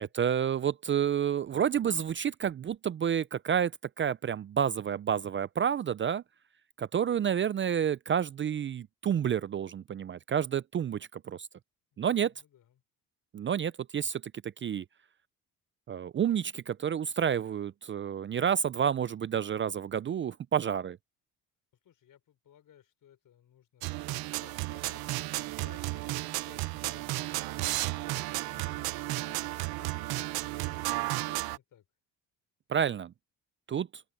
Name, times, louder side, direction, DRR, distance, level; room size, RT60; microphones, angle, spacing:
voice 1, 0.0-3.7 4.0-6.2 6.8-11.5 12.0-12.3 13.3-14.8 15.9-21.0 32.7-33.1 33.7-34.0, right 8 dB, 35° right, 0.4 m, -29 dB
voice 2, 11.9-12.8 21.8-31.9, left 10 dB, 60° left, 5.3 m, -60 dB
sound 1, 23.8-31.6, right 18 dB, 80° right, 0.9 m, -33 dB
open air
cardioid pair, 90°, 36 cm